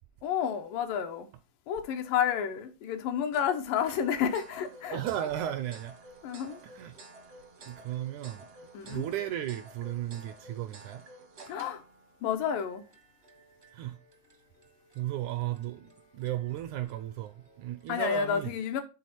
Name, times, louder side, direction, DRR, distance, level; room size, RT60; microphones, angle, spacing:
voice 1, 0.2-1.3 1.7-5.0 6.2-6.6 8.7-9.0 11.5-11.8 12.2-12.8 17.9-18.8, left 8 dB, 85° left, 2.6 m, -30 dB
sound 1, 3.3-18.1, right 2 dB, 65° right, 0.6 m, -53 dB
voice 2, 4.9-5.9 6.6-6.9 7.7-8.4 8.8-11.0 13.7-14.0 15.0-15.9 16.1-18.5, right 12 dB, 80° right, 1.7 m, -35 dB
9.9 x 3.9 x 4.2 m
omnidirectional pair, 3.8 m